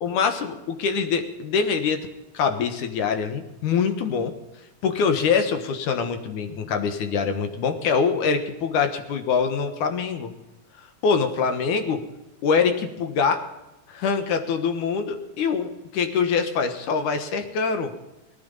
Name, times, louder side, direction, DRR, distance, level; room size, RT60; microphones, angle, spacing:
voice 1, 0.0-2.0 2.3-4.3 4.8-10.3 11.0-12.0 12.4-13.4 13.9-17.9, left 5 dB, 80° left, 7 dB, 2.7 m, -24 dB
18.0 x 11.0 x 5.3 m, 1.0 s
omnidirectional pair, 3.6 m